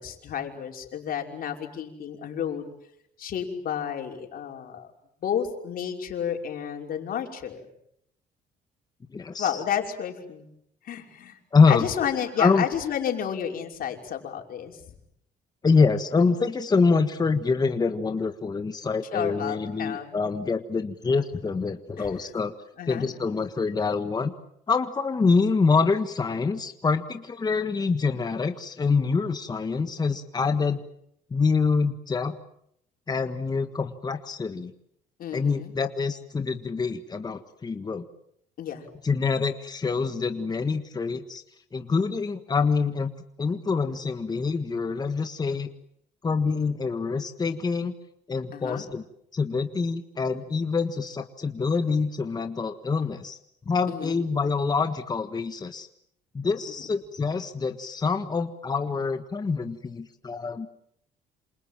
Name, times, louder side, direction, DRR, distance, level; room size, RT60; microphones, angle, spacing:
voice 1, 0.0-2.7 3.2-4.9 5.2-7.7 9.4-10.4 10.8-11.4 11.7-14.8 19.1-20.2 22.0-22.1 22.8-23.1 35.2-35.7 38.6-38.9 48.5-48.8 53.9-54.2, left 9 dB, 60° left, 3 dB, 5.6 m, -31 dB
voice 2, 9.1-9.6 11.5-11.9 12.4-12.6 15.6-22.5 22.9-24.3 24.7-30.8 31.3-32.4 33.1-34.7 35.3-38.0 39.0-41.4 41.7-43.1 43.4-45.7 46.2-47.9 48.3-49.0 49.3-53.4 53.6-55.9 56.3-60.7, left 4 dB, 25° left, 8 dB, 1.6 m, -25 dB
28.0 x 27.5 x 7.6 m, 0.73 s
cardioid pair, 110°, 17 cm